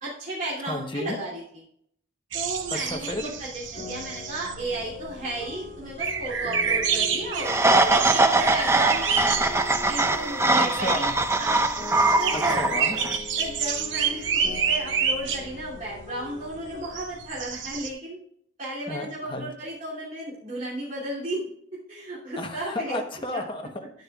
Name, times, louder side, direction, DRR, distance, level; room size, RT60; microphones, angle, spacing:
voice 1, 0.0-1.6 2.3-9.0 9.9-11.1 11.4-11.6 12.2-12.7 13.4-18.2 18.6-21.4 21.9-23.0 23.3-23.5, right 1 dB, 40° right, -7 dB, 2.8 m, -34 dB
voice 2, 0.6-1.2 2.7-3.3 10.7-11.1 12.3-13.0 18.9-19.5 22.4-23.9, left 2 dB, 25° left, 3 dB, 1.0 m, -32 dB
sound 1, 2.3-17.9, right 7 dB, 70° right, 0.9 m, -29 dB
sound 2, 3.7-17.0, left 4 dB, 45° left, 3.8 m, -42 dB
sound 3, 7.5-13.2, right 2 dB, 15° right, 0.5 m, -22 dB
10.5 x 9.8 x 2.4 m, 0.68 s
head